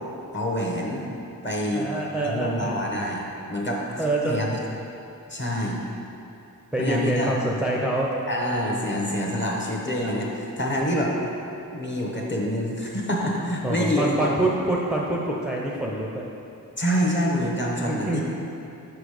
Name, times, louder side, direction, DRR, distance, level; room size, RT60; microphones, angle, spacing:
voice 1, 0.3-1.1 1.4-1.9 2.2-3.8 4.3-4.5 5.3-5.8 6.8-7.4 8.3-11.1 11.7-14.5 16.8-18.2, equal, 30° left, -1 dB, 1.0 m, -26 dB
voice 2, 1.7-2.8 4.0-4.5 6.7-8.1 13.6-16.2 17.9-18.2, right 1 dB, ahead, -3 dB, 0.5 m, -26 dB
6.1 x 5.4 x 4.9 m, 2.8 s
wide cardioid pair, 125°, 35 cm